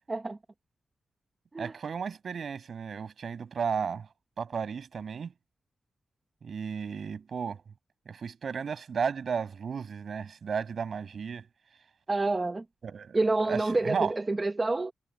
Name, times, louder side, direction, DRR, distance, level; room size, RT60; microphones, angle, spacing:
voice 1, 1.6-4.1 4.4-5.3 6.4-7.6 8.1-11.5 12.8-13.2 13.5-14.1, right 6 dB, 65° right, 7.9 m, -34 dB
voice 2, 12.1-12.6 13.1-14.9, right 2 dB, 25° right, 1.7 m, -28 dB
wide cardioid pair, 95°, 0 cm